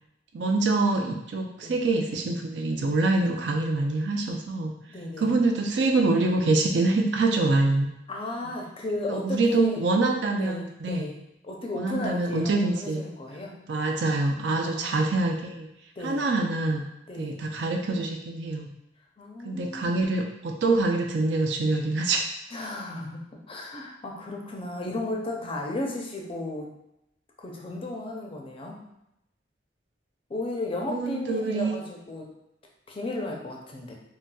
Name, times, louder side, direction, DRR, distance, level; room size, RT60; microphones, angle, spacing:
voice 1, 0.3-4.7 5.2-7.9 9.1-11.1 11.8-13.0 13.7-15.7 16.0-16.8 17.2-18.7 19.4-22.2 30.9-31.8, right 2 dB, 75° right, 2 dB, 0.5 m, -25 dB
voice 2, 4.9-5.4 8.1-9.8 10.3-11.2 11.4-13.5 14.6-15.1 16.0-16.2 17.1-17.4 19.2-20.0 22.5-26.7 27.4-28.8 30.3-32.3 32.9-33.9, left 2 dB, 30° left, 0 dB, 0.5 m, -34 dB
3.9 x 2.3 x 2.3 m, 0.84 s
head